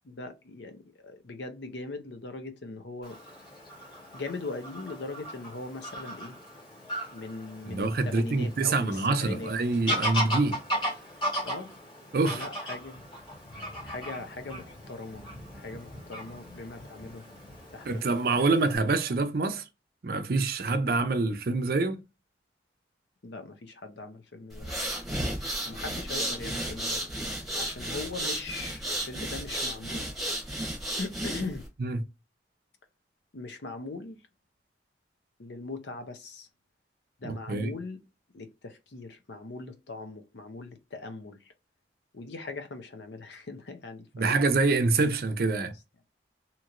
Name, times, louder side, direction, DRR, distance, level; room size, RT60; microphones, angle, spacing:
voice 1, 0.0-3.2 4.1-6.4 7.1-9.5 11.4-11.7 12.3-13.0 13.8-15.2 15.5-17.2 17.7-18.6 23.2-24.7 25.6-27.1 27.5-30.1 31.0-31.7 33.3-34.2 35.4-36.5 37.2-38.0 38.3-41.5 42.1-44.3 45.6-45.7, left 3 dB, 75° left, 0.6 m, -40 dB
Fowl / Bird vocalization bird call bird song, 3.0-18.8, equal, 25° left, 1.4 m, -37 dB
voice 2, 7.7-10.6 12.1-12.4 17.9-19.6 20.0-22.0 31.8-32.0 37.2-37.7 44.2-45.7, right 3 dB, 55° right, 0.5 m, -26 dB
sound 1, 24.5-31.7, right 1 dB, ahead, 0.9 m, -33 dB
2.9 x 2.9 x 2.4 m
head